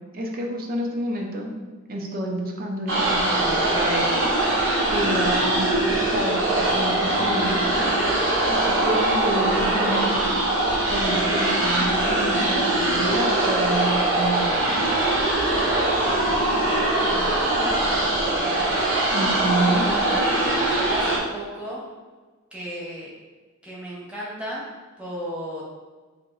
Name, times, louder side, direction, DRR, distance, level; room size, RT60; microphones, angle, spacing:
voice 1, 0.1-1.5 1.9-4.1 4.9-5.7 6.1-7.8 8.5-10.2 10.9-14.7 19.1-19.9, right 1 dB, 45° right, 0 dB, 0.6 m, -28 dB
sound 1, 2.9-21.2, right 1 dB, 70° right, 0.9 m, -22 dB
voice 2, 16.2-18.8 19.6-21.8 22.5-23.1 23.6-24.6 25.0-25.6, equal, 5° right, -7 dB, 0.9 m, -35 dB
3.5 x 2.8 x 3.9 m, 1.3 s
head